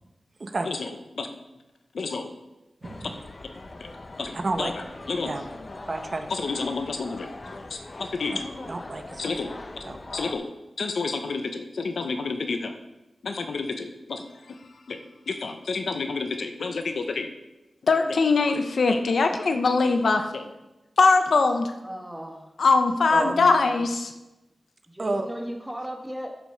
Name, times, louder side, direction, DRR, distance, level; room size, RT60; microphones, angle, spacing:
voice 1, 1.9-2.3 4.2-4.7 5.1-5.3 6.3-7.3 7.7-8.4 9.2-9.5 10.1-10.5 10.8-12.7 13.2-14.2 14.9-15.0 15.3-17.3 17.8-20.5 21.0-21.7 22.6-24.1, left 4 dB, 80° left, 6 dB, 0.8 m, -24 dB
sound 1, 2.8-10.3, left 2 dB, 45° left, 0.9 m, -41 dB
voice 2, 2.8-3.2 4.3-4.7 5.2-5.4 5.9-6.5 8.7-9.4 9.8-10.0 23.1-23.3 25.0-25.3, right 2 dB, 50° right, 6 dB, 1.0 m, -30 dB
voice 3, 21.8-22.5 23.1-23.9 24.9-26.4, equal, 5° right, 2 dB, 1.7 m, -37 dB
10.5 x 5.3 x 6.4 m, 1.0 s
cardioid pair, 60°, 0 cm